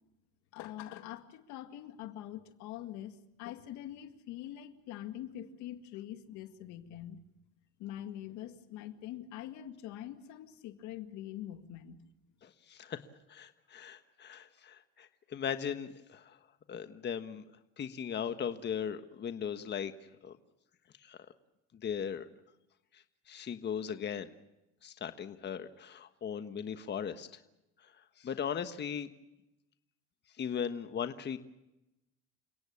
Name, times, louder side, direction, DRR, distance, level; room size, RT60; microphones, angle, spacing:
voice 1, 0.5-7.2 7.8-12.1, left 12 dB, 75° left, 2.0 m, -44 dB
voice 2, 12.4-13.0 13.3-16.4 16.7-17.4 17.8-19.9 20.2-20.4 21.0-21.2 21.8-22.2 22.9-24.3 24.8-27.3 28.2-29.1 30.4-31.4, left 8 dB, 35° left, 1.4 m, -38 dB
29.0 x 17.5 x 7.1 m
supercardioid pair, 105°, 30 cm